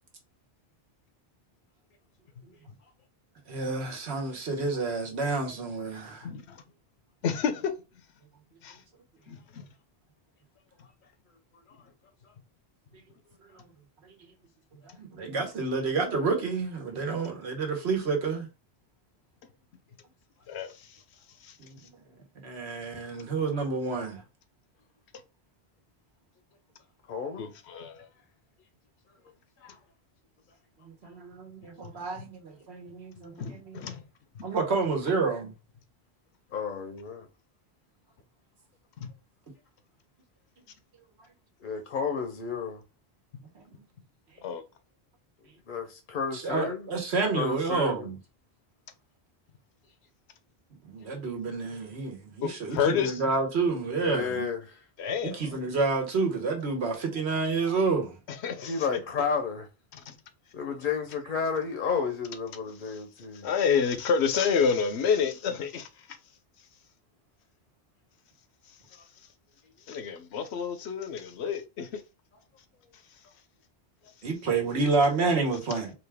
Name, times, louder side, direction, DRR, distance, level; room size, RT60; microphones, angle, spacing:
voice 1, 3.5-6.3 15.0-18.5 21.6-21.8 22.4-24.2 30.8-33.8 34.4-35.5 43.5-43.8 46.3-48.2 50.8-54.5 55.2-58.2 74.2-75.9, right 4 dB, 90° right, 1.3 m, -29 dB
voice 2, 6.2-6.6 7.2-7.7 8.6-8.8 9.3-9.7 20.5-21.0 21.4-21.9 27.4-28.1 31.8-32.3 33.4-34.0 34.3-34.5 39.0-39.1 44.4-44.6 52.4-53.2 55.0-55.5 58.3-59.0 59.9-60.2 62.8-66.2 68.7-69.0 69.9-72.0 72.9-73.0, left 6 dB, 90° left, 0.9 m, -30 dB
voice 3, 27.1-27.5 29.6-29.8 32.1-32.2 36.5-37.3 41.6-42.8 45.7-46.8 47.3-48.1 54.0-54.8 58.6-59.7 60.5-63.5, left 5 dB, 60° left, 0.7 m, -32 dB
4.0 x 2.3 x 3.4 m
omnidirectional pair, 1.1 m